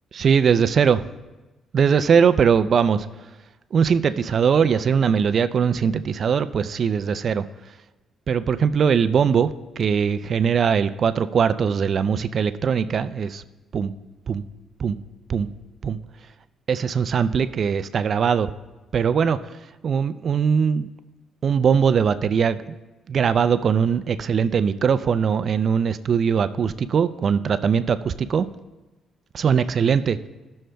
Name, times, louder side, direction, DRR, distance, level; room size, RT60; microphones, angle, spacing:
voice 1, 0.1-1.0 1.7-3.3 3.7-7.8 8.3-13.4 13.7-13.9 14.3-14.4 14.8-15.0 15.3-15.5 15.8-16.0 16.7-18.5 18.9-20.9 21.4-22.8 23.1-28.5 29.3-30.2, right 6 dB, 55° right, 13 dB, 0.4 m, -21 dB
17.0 x 6.3 x 2.2 m, 1.1 s
cardioid pair, 90°, 0 cm